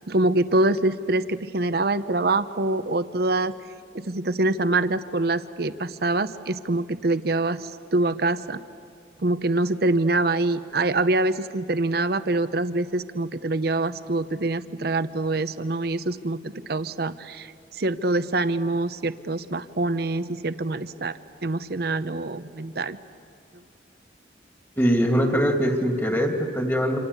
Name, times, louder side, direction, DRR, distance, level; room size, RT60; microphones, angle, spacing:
voice 1, 0.1-3.5 3.9-8.6 9.2-23.0, right 2 dB, 60° right, 12 dB, 0.8 m, -25 dB
voice 2, 24.8-27.0, equal, 15° left, 4 dB, 2.7 m, -22 dB
27.5 x 26.5 x 8.3 m, 2.2 s
head